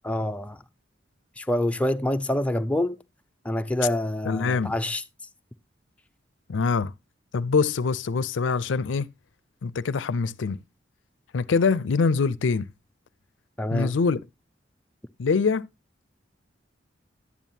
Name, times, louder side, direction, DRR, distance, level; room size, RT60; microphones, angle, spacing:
voice 1, 0.0-0.6 1.4-3.0 3.4-5.0 13.6-13.9, left 1 dB, 5° left, 0.4 m, -26 dB
voice 2, 4.2-4.8 6.5-6.9 7.3-9.1 9.6-10.6 11.3-12.7 13.7-14.2 15.2-15.7, left 4 dB, 85° left, 0.5 m, -24 dB
11.0 x 9.1 x 2.7 m
head